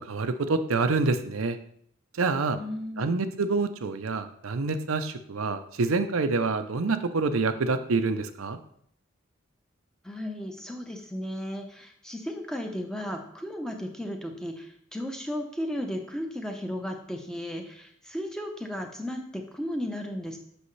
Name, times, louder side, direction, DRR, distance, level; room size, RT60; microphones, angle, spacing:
voice 1, 0.0-1.6 2.2-2.6 3.0-8.6, right 3 dB, 85° right, 9 dB, 0.6 m, -27 dB
voice 2, 2.5-3.1 10.0-20.4, equal, 5° left, 2 dB, 0.8 m, -35 dB
7.9 x 6.3 x 3.2 m, 0.68 s
head